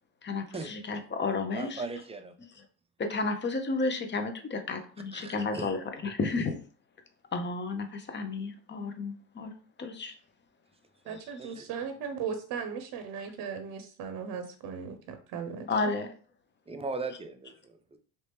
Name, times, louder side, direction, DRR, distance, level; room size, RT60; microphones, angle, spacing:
voice 1, 0.2-1.8 3.0-6.6 7.3-9.5 9.8-10.1 15.7-16.1, left 3 dB, 25° left, 7 dB, 0.7 m, -32 dB
voice 2, 1.5-2.3 5.1-5.7 11.0-11.7 16.7-18.0, right 3 dB, 15° right, 8 dB, 0.5 m, -39 dB
voice 3, 11.1-15.9, right 6 dB, 60° right, 7 dB, 0.7 m, -37 dB
3.2 x 2.9 x 3.3 m, 0.41 s
supercardioid pair, 90°, 41 cm